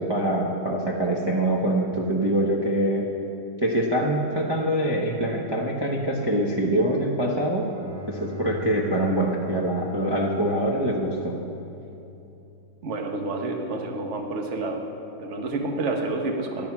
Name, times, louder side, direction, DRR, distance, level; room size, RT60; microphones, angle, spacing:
voice 1, 0.0-3.1 3.6-7.7 8.1-11.3, right 1 dB, 20° right, -4 dB, 0.8 m, -24 dB
Bowed string instrument, 7.4-12.4, left 2 dB, 85° right, 2.7 m, -39 dB
voice 2, 12.8-14.8 15.2-16.7, right 2 dB, 45° right, 3 dB, 1.4 m, -29 dB
14.0 x 11.5 x 6.0 m, 2.9 s
omnidirectional pair, 1.9 m